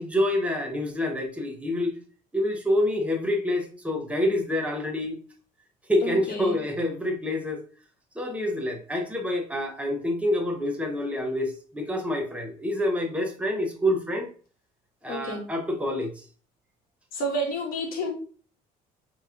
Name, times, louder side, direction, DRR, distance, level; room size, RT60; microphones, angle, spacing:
voice 1, 0.0-1.9 2.3-5.2 5.9-7.6 8.1-14.3 15.0-16.2, left 1 dB, 5° right, 2 dB, 0.8 m, -27 dB
voice 2, 6.0-6.6 15.1-15.4 17.1-18.1, equal, 60° left, 1 dB, 1.3 m, -30 dB
4.7 x 2.9 x 2.4 m, 0.40 s
cardioid pair, 110°, 17 cm